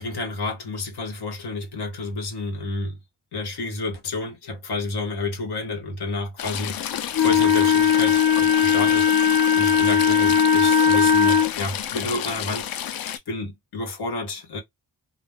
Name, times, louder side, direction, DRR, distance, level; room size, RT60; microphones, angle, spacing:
voice 1, 0.0-3.0 3.3-14.6, left 3 dB, 90° left, 1.1 m, -30 dB
Stream / Trickle dribble, 6.4-13.2, left 10 dB, 65° left, 0.5 m, -31 dB
Wind instrument woodwind instrument, 7.1-11.5, left 7 dB, 35° left, 0.8 m, -18 dB
2.5 x 2.1 x 3.3 m
cardioid pair, 70°, 38 cm